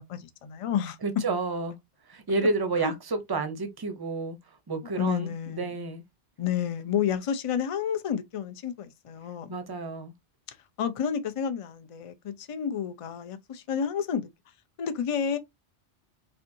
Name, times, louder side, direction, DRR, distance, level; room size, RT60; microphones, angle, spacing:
voice 1, 0.0-1.0 2.8-2.9 4.8-5.9 6.4-9.6 10.5-14.3 14.8-15.4, left 8 dB, 45° left, 0.4 m, -30 dB
voice 2, 1.0-1.7 2.1-4.4 4.7-6.0 9.5-10.1, right 3 dB, 25° right, 0.6 m, -30 dB
4.3 x 2.7 x 2.6 m
omnidirectional pair, 1.1 m